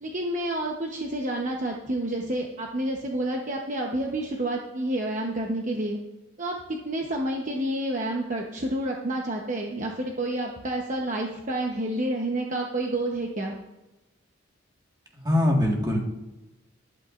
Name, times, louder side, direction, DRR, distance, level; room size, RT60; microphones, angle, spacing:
voice 1, 0.0-6.0 6.4-13.5, right 1 dB, 40° right, 0 dB, 0.9 m, -29 dB
voice 2, 15.1-16.0, left 1 dB, 20° right, -1 dB, 1.7 m, -22 dB
14.0 x 12.0 x 2.5 m, 1.0 s
head